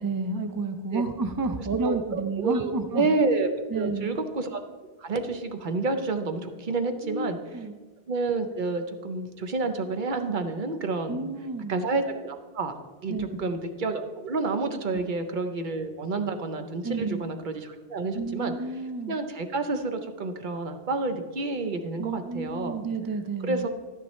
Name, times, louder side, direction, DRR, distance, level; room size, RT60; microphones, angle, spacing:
voice 1, 0.0-3.0 3.7-4.2 7.0-7.7 11.1-11.7 13.1-13.4 16.8-17.2 18.1-19.2 22.0-23.7, right 3 dB, 35° right, 8 dB, 0.4 m, -31 dB
voice 2, 1.8-4.6 5.0-7.4 8.1-11.3 11.7-12.7 13.0-18.5 19.1-22.8 23.5-23.7, right 3 dB, 55° right, 7 dB, 0.8 m, -29 dB
11.5 x 10.0 x 3.1 m, 1.3 s
omnidirectional pair, 1.0 m